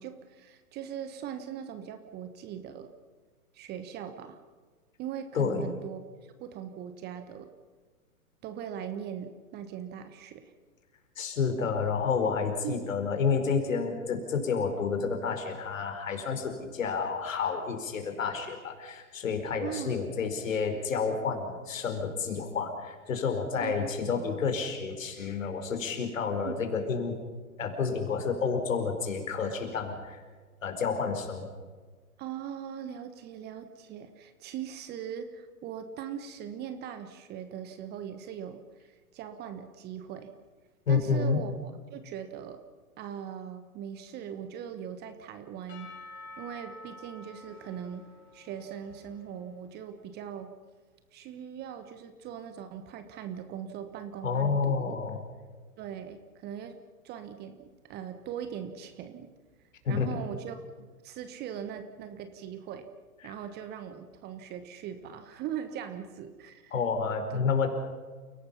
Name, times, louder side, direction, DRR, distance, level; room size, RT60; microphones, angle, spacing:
voice 1, 0.0-2.9 3.5-4.4 5.0-6.0 6.4-7.5 8.4-10.5 12.6-12.8 19.6-20.1 23.6-24.1 26.4-26.6 32.2-40.3 40.9-42.6 43.0-45.9 46.4-50.5 51.1-55.0 55.8-56.8 57.0-59.3 59.9-62.9 63.2-66.7 67.3-67.4, right 9 dB, 20° right, 9 dB, 1.3 m, -40 dB
voice 2, 5.3-5.7 11.2-27.2 27.6-30.2 30.6-31.5 40.9-41.4 54.2-55.2 59.8-60.2 63.2-63.3 66.7-67.7, left 5 dB, 60° left, 5 dB, 5.0 m, -30 dB
Percussion / Church bell, 45.7-49.8, left 2 dB, 25° left, 6.7 m, -49 dB
29.5 x 18.0 x 5.7 m, 1.5 s
figure-of-eight pair, 115°, 44 cm